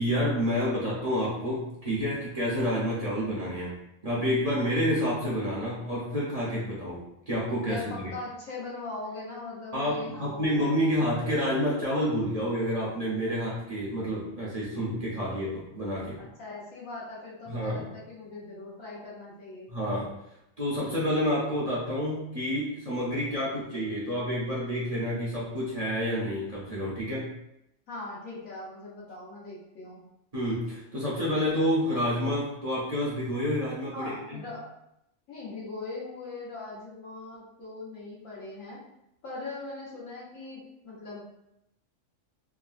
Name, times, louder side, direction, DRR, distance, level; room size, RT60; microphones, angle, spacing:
voice 1, 0.0-8.1 9.7-16.2 17.5-17.9 19.7-20.1 20.6-27.3 30.3-34.4, equal, 40° right, -7 dB, 0.6 m, -29 dB
voice 2, 7.6-10.7 16.2-19.7 27.9-30.0 33.9-34.7 35.3-38.8 39.2-41.2, left 3 dB, 90° left, -6 dB, 1.4 m, -40 dB
3.3 x 2.2 x 2.4 m, 0.82 s
omnidirectional pair, 1.3 m